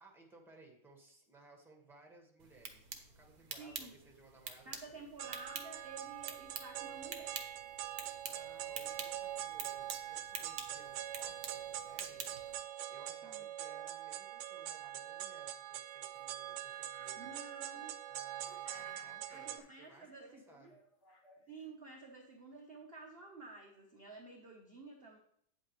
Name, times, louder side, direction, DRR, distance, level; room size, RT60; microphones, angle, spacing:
voice 1, 0.0-2.9 3.1-5.4 8.2-17.3 18.1-20.8, right 2 dB, ahead, 1 dB, 1.6 m, -62 dB
sound 1, 2.4-12.6, right 6 dB, 55° right, 1.3 m, -48 dB
voice 2, 3.6-3.9 4.6-7.4 13.2-13.5 17.2-18.0 19.3-20.7 21.5-25.2, right 3 dB, 40° right, 0 dB, 1.0 m, -52 dB
sound 2, 5.2-19.6, right 12 dB, 75° right, 1.3 m, -44 dB
sound 3, 16.1-16.2 16.5-18.1 18.4-21.7, left 2 dB, 35° left, 1.8 m, -61 dB
9.1 x 8.3 x 3.3 m, 0.66 s
omnidirectional pair, 2.2 m